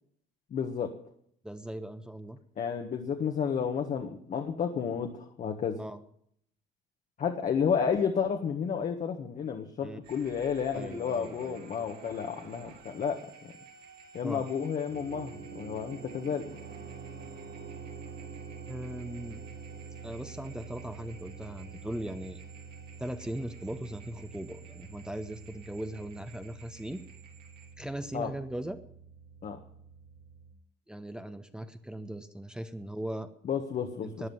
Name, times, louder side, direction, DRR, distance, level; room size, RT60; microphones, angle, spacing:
voice 1, 0.5-0.9 2.6-5.8 7.2-13.5 14.1-16.5 28.1-28.3 29.4-29.6 33.4-34.2, left 7 dB, 50° left, 4 dB, 1.6 m, -31 dB
voice 2, 1.4-2.4 5.8-6.0 9.8-10.0 10.7-11.6 14.2-14.4 18.7-19.4 20.0-22.4 23.0-27.0 27.8-28.8 30.9-33.3 34.0-34.3, right 1 dB, 5° right, 9 dB, 1.0 m, -39 dB
sound 1, 10.0-27.7, right 5 dB, 70° right, 3.3 m, -53 dB
sound 2, 14.9-30.5, right 5 dB, 85° right, 3.0 m, -47 dB
13.0 x 9.5 x 9.4 m, 0.67 s
cardioid pair, 110°, 17 cm